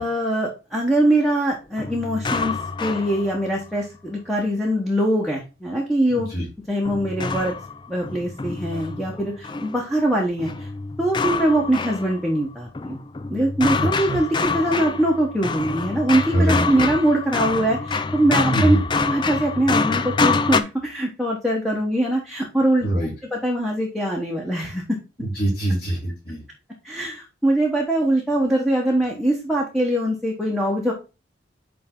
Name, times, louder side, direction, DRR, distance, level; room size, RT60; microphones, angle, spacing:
voice 1, 0.0-6.3 6.7-7.5 7.9-10.7 11.0-13.0 13.3-22.8 23.3-25.0 26.8-30.9, right 1 dB, ahead, -3 dB, 1.1 m, -22 dB
sound 1, 1.8-3.7 6.8-9.8 10.4-12.4 12.7-20.6, left 4 dB, 25° left, 0.4 m, -26 dB
voice 2, 16.3-16.9 18.5-18.8 22.8-23.1 25.2-26.4, right 1 dB, 55° left, -5 dB, 4.0 m, -22 dB
9.4 x 3.4 x 3.8 m, 0.30 s
head